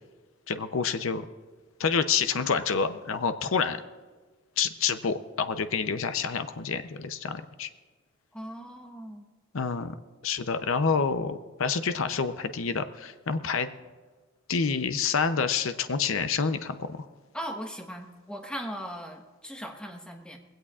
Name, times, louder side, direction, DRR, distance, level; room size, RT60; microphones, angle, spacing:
voice 1, 0.5-1.2 1.8-3.8 4.6-7.7 9.5-9.9 10.2-13.7 14.5-17.1, left 5 dB, 75° left, 10 dB, 0.6 m, -28 dB
voice 2, 8.3-9.2 17.3-20.4, equal, 5° left, 3 dB, 1.2 m, -38 dB
20.5 x 17.0 x 2.4 m, 1.3 s
head